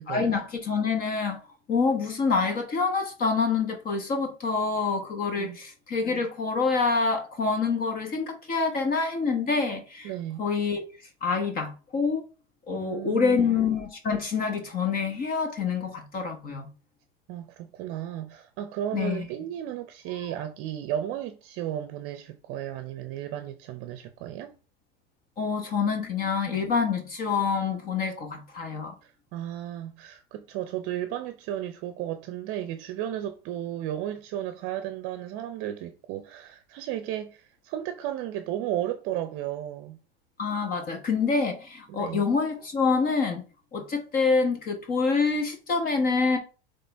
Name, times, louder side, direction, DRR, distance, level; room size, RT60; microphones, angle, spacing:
voice 1, 0.1-1.4 1.7-10.1 10.4-10.9 11.2-12.2 12.7-16.7 18.9-19.3 25.4-28.9 40.4-43.4 43.7-46.4, left 4 dB, 30° left, 1.1 m, -26 dB
voice 2, 10.0-10.5 12.7-13.4 17.3-24.5 29.0-40.0 41.9-42.3, right 11 dB, 45° right, 0.7 m, -34 dB
8.3 x 3.4 x 3.4 m
supercardioid pair, 140°, 29 cm